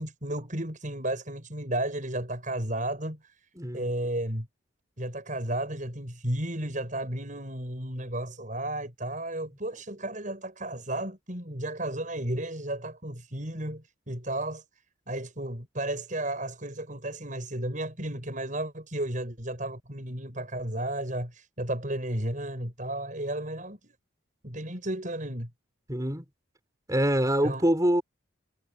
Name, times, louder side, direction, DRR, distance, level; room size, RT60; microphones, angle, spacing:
voice 1, 0.0-3.5 3.7-4.5 5.0-14.6 15.1-23.9 24.4-25.5 27.4-27.6, right 1 dB, 40° right, 7.5 m, -33 dB
voice 2, 3.6-3.9 25.9-26.2 26.9-28.0, right 1 dB, 15° right, 5.6 m, -25 dB
head